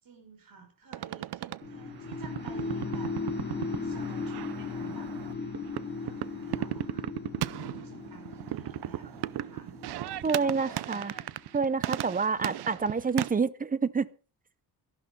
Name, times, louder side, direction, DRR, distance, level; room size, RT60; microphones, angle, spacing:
voice 1, 0.0-3.2 3.5-5.4 5.8-7.1 7.5-9.8 10.2-11.3 12.3-12.5, right 5 dB, 55° right, 5.6 m, -52 dB
sound 1, 0.9-13.3, right 13 dB, 75° right, 0.6 m, -37 dB
sound 2, 1.6-11.6, left 4 dB, 25° left, 2.4 m, -38 dB
voice 2, 10.2-11.1 11.5-14.1, right 5 dB, 20° right, 0.6 m, -28 dB
13.5 x 12.0 x 5.3 m
wide cardioid pair, 175°, 40 cm